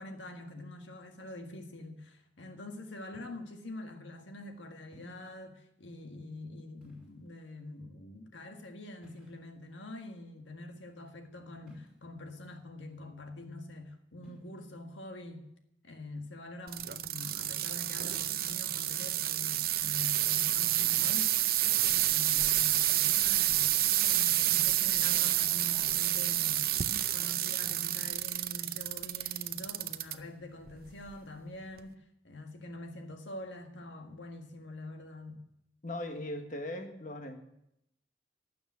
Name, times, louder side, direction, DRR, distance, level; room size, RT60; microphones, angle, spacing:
voice 1, 0.0-15.5 15.8-21.4 21.8-26.8 27.1-32.0 32.2-35.4, left 1 dB, 85° left, 1.7 m, -45 dB
sound 1, 3.1-3.6 4.9-5.3 6.7-7.4 9.0-9.7 11.6-12.2 14.2-14.5 16.8-17.3 19.4-19.8, equal, 5° right, 5.6 m, -57 dB
sound 2, 16.7-30.1 30.7-31.1 31.8-31.9, right 13 dB, 55° right, 0.6 m, -29 dB
voice 2, 35.8-37.4, left 1 dB, 45° left, 1.4 m, -39 dB
12.5 x 7.1 x 9.7 m
head